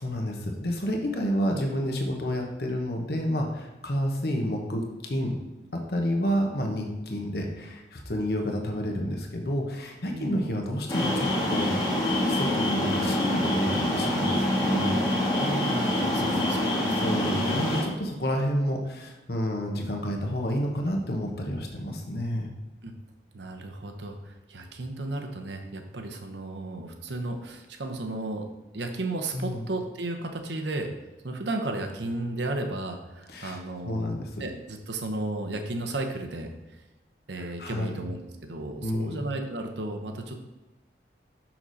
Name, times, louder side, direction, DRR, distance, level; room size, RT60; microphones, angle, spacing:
voice 1, 0.0-5.4 5.7-11.8 12.1-14.9 15.8-16.3 16.9-22.5 29.3-29.6 33.3-33.6 33.8-34.5 37.4-38.0 38.8-39.3, equal, 55° left, 2 dB, 1.1 m, -30 dB
voice 2, 10.1-10.4 15.3-17.0 22.8-22.9 23.3-28.5 28.7-30.9 31.2-34.1 34.4-36.5 37.3-40.4, right 2 dB, 70° right, 4 dB, 0.9 m, -34 dB
sound 1, 10.9-17.8, left 1 dB, 20° left, 1.4 m, -26 dB
6.4 x 5.9 x 4.1 m, 1.1 s
head